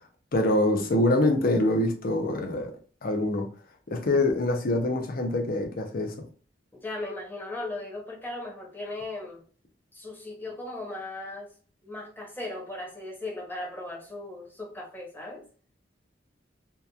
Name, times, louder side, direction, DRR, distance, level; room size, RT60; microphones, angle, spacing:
voice 1, 0.3-2.7 3.0-3.5 3.9-6.1, left 1 dB, 55° left, 0.5 m, -25 dB
voice 2, 6.7-9.4 9.9-11.5 11.8-15.4, left 2 dB, 10° left, 0.8 m, -37 dB
2.8 x 2.2 x 2.2 m
head